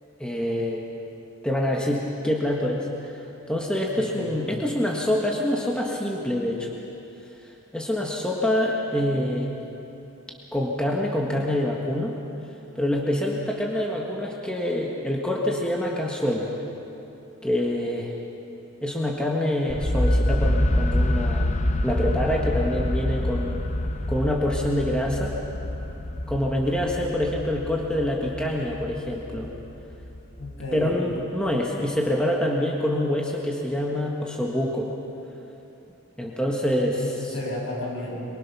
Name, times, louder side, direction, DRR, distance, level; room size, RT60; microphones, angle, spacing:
voice 1, 0.2-0.8 1.4-2.9 3.5-6.8 7.7-9.5 10.5-12.2 12.7-16.5 17.4-18.1 18.8-21.5 21.8-23.7 24.1-25.3 26.3-29.5 30.7-34.9 36.2-37.3, left 1 dB, 5° left, -2 dB, 1.6 m, -26 dB
voice 2, 3.9-4.4 30.4-31.0 36.9-38.3, left 2 dB, 70° left, -3 dB, 6.9 m, -33 dB
sound 1, 19.7-31.5, left 1 dB, 35° left, 0.7 m, -27 dB
23.5 x 23.0 x 6.1 m, 2.9 s
head